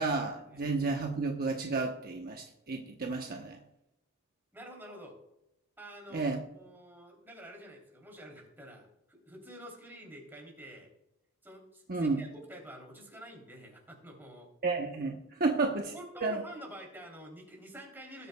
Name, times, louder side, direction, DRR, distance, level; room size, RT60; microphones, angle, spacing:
voice 1, 0.0-3.6 6.1-6.4 11.9-12.2 14.6-15.8 16.2-16.4, right 3 dB, 45° right, 2 dB, 1.0 m, -31 dB
voice 2, 4.5-5.1 5.8-10.9 11.4-14.5 15.4-15.6 15.9-18.3, right 1 dB, 10° right, 0 dB, 3.1 m, -48 dB
19.5 x 8.2 x 2.3 m, 0.84 s
head